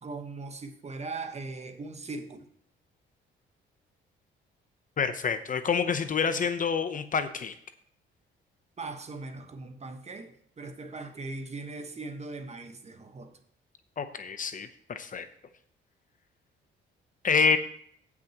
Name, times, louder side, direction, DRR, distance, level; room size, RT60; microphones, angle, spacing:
voice 1, 0.0-2.5 8.8-13.4, right 3 dB, 35° right, 1.3 m, -40 dB
voice 2, 5.0-7.5 14.0-15.3 17.2-17.6, left 5 dB, 40° left, 0.8 m, -27 dB
16.5 x 6.2 x 3.0 m
cardioid pair, 90°, 20 cm